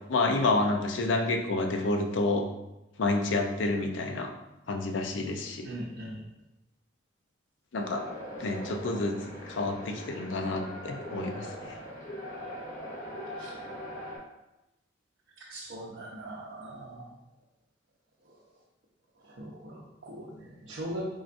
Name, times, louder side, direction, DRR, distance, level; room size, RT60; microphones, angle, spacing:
voice 1, 0.1-2.5 3.0-4.3 4.7-5.7 7.7-8.0 8.4-9.2 9.5-11.7, left 2 dB, 75° left, 4 dB, 0.5 m, -29 dB
voice 2, 5.6-6.2 13.4-13.5 15.5-17.1 19.2-21.2, right 1 dB, 75° right, -5 dB, 0.7 m, -40 dB
sound 1, 7.8-14.2, equal, 40° left, 1.2 m, -41 dB
4.5 x 3.8 x 2.5 m, 0.95 s
head